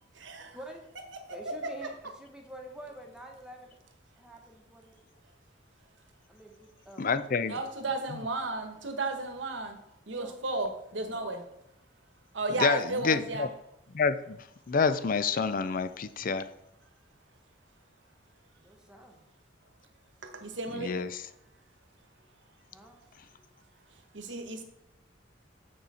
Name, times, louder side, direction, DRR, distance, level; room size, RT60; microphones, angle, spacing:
voice 1, 0.2-0.6 7.5-9.8 10.1-10.7 10.9-11.4 12.3-13.5 20.2-20.9 24.1-24.6, right 2 dB, 75° right, 6 dB, 1.2 m, -33 dB
voice 2, 1.3-3.8 4.2-4.9 6.3-7.1 10.1-10.7 18.6-19.2 22.7-23.0, right 1 dB, 5° right, 1 dB, 1.2 m, -46 dB
voice 3, 7.0-7.6 8.1-8.2 12.5-13.5 13.9-14.4 14.7-16.5 20.7-21.3, left 5 dB, 45° left, 13 dB, 0.5 m, -28 dB
7.1 x 6.5 x 4.2 m, 0.82 s
head